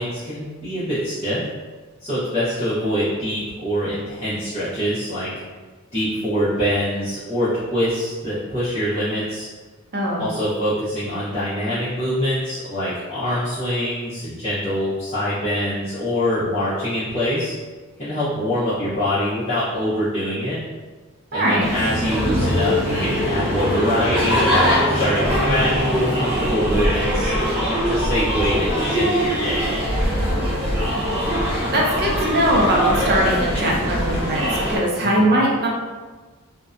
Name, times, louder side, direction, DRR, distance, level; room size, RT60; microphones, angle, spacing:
voice 1, 0.0-1.4 2.0-5.3 5.9-9.5 10.2-17.5 18.0-20.6 21.3-29.6 35.0-35.3, equal, 30° left, -13 dB, 0.7 m, -24 dB
voice 2, 9.9-10.3 21.3-21.7 31.7-34.4 34.7-35.7, right 1 dB, 50° right, -2 dB, 0.5 m, -20 dB
sound 1, 21.6-34.8, equal, 25° right, 1.0 m, -22 dB
2.5 x 2.1 x 2.4 m, 1.3 s
head